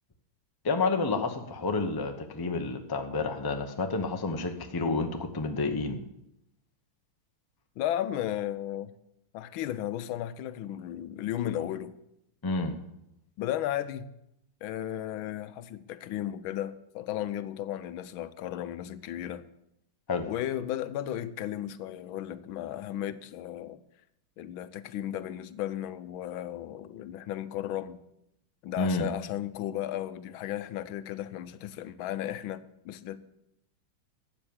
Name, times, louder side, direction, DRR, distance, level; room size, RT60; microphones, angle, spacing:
voice 1, 0.6-6.0 12.4-12.7 20.1-20.2 28.8-29.1, left 3 dB, 25° left, 0.5 m, -29 dB
voice 2, 7.8-8.9 9.3-12.0 13.4-14.1 14.6-19.4 20.3-23.8 24.4-28.0 28.6-33.2, left 12 dB, 80° left, 1.5 m, -34 dB
12.5 x 8.5 x 7.1 m
omnidirectional pair, 2.2 m